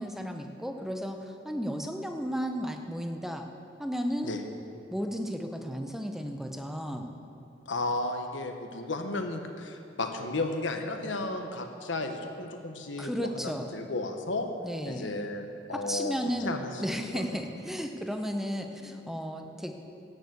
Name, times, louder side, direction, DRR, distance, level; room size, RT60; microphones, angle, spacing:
voice 1, 0.0-3.5 3.8-4.3 4.9-7.1 13.0-13.7 14.6-15.1 15.7-16.5 16.8-19.7, equal, ahead, 4 dB, 0.8 m, -34 dB
voice 2, 7.7-14.5 14.9-16.2 16.4-17.4, left 2 dB, 85° left, 5 dB, 1.2 m, -34 dB
11.0 x 9.3 x 8.1 m, 2.6 s
head